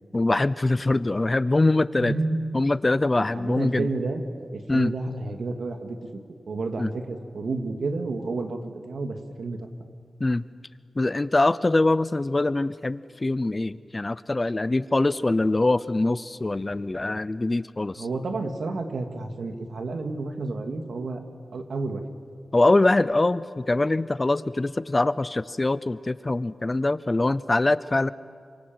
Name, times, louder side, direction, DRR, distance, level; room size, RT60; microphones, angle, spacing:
voice 1, 0.1-2.1 2.5-3.9 4.7-4.9 6.8-6.9 10.2-10.4 11.0-18.1 22.5-28.1, left 2 dB, 25° left, 16 dB, 0.7 m, -23 dB
voice 2, 2.0-2.4 3.3-4.2 4.5-6.2 6.5-9.7 18.0-21.2 21.5-22.0, right 3 dB, 80° right, 5 dB, 2.4 m, -30 dB
28.0 x 25.5 x 7.9 m, 2.1 s
wide cardioid pair, 100°, 0 cm